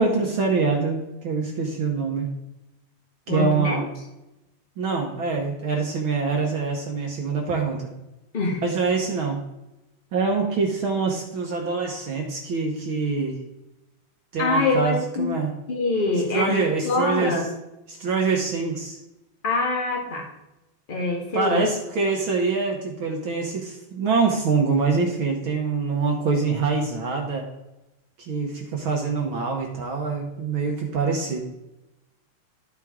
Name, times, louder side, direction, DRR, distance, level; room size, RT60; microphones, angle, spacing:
voice 1, 0.0-2.4 3.3-3.9 4.8-7.9 8.6-9.4 10.1-13.4 14.3-15.5 16.3-17.3 17.9-19.0 21.3-27.5 28.2-31.4, right 4 dB, 60° right, 1 dB, 1.4 m, -25 dB
voice 2, 3.3-3.8 8.3-8.6 14.4-15.3 15.7-17.5 19.4-20.3 20.9-21.7, left 2 dB, 70° left, 0 dB, 0.5 m, -24 dB
13.5 x 4.5 x 3.6 m, 0.94 s
omnidirectional pair, 3.5 m